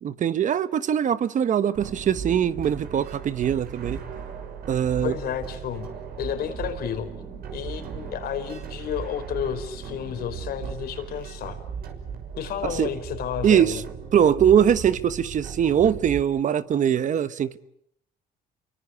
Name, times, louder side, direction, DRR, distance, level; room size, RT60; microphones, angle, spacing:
voice 1, 0.0-4.0 4.7-5.1 12.6-12.9 13.4-13.8 14.1-17.6, right 9 dB, 50° right, 1.2 m, -22 dB
sound 1, 1.7-16.2, right 6 dB, 65° right, 6.1 m, -37 dB
voice 2, 5.0-5.9 6.2-7.1 7.5-11.6 12.4-13.8, left 9 dB, 65° left, 4.9 m, -31 dB
29.5 x 24.0 x 8.2 m
cardioid pair, 110°, 17 cm